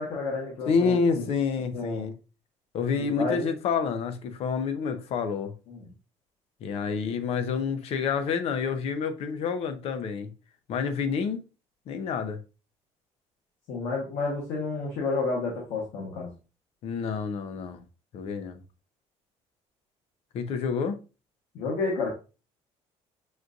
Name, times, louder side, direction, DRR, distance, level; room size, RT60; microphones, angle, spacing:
voice 1, 0.0-1.2 1.7-2.1 3.2-3.5 5.7-5.9 13.7-16.3 21.5-22.1, left 3 dB, 75° left, 1.2 m, -30 dB
voice 2, 0.7-2.1 2.7-5.5 6.6-10.3 10.7-11.4 11.9-12.4 16.8-17.8 18.1-18.6 20.3-21.0, left 5 dB, 55° left, 0.6 m, -28 dB
6.1 x 2.5 x 2.4 m
cardioid pair, 155°, 12 cm